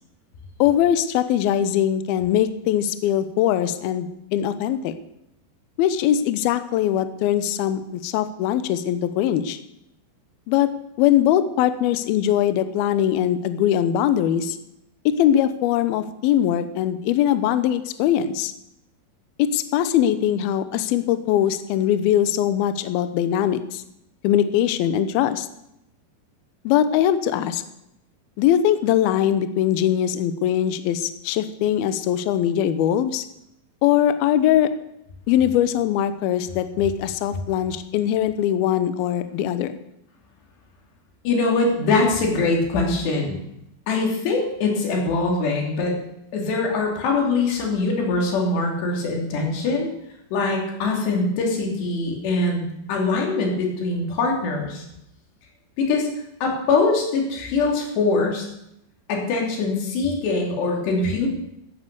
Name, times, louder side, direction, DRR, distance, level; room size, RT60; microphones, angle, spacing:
voice 1, 0.6-4.9 5.8-9.6 10.5-10.7 11.0-14.6 15.2-18.5 19.4-23.8 24.2-25.5 26.6-27.6 28.4-33.2 33.8-34.7 35.3-39.7, left 10 dB, 90° left, 11 dB, 2.2 m, -21 dB
voice 2, 41.3-43.4 43.9-45.9 46.3-49.9 50.3-54.8 55.8-56.1 56.4-58.4 59.1-61.3, left 3 dB, 65° left, 0 dB, 5.1 m, -23 dB
15.5 x 10.0 x 6.8 m, 0.83 s
omnidirectional pair, 5.5 m